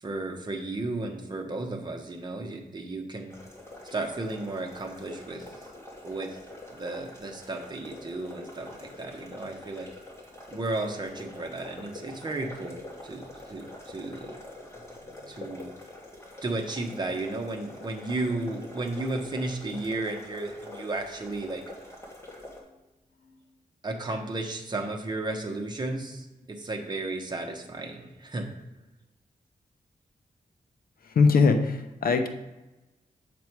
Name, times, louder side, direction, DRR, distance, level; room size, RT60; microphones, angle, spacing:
voice 1, 0.0-3.3 3.9-5.5 6.0-6.4 6.7-9.9 10.5-14.4 15.3-15.7 16.4-21.6 23.8-28.5, right 2 dB, 30° right, 2 dB, 1.1 m, -34 dB
sound 1, 3.3-22.6, left 2 dB, 15° left, 2.0 m, -45 dB
voice 2, 31.0-32.3, left 4 dB, 75° left, 6 dB, 0.8 m, -22 dB
7.1 x 6.9 x 4.6 m, 1.0 s
wide cardioid pair, 140°, 15 cm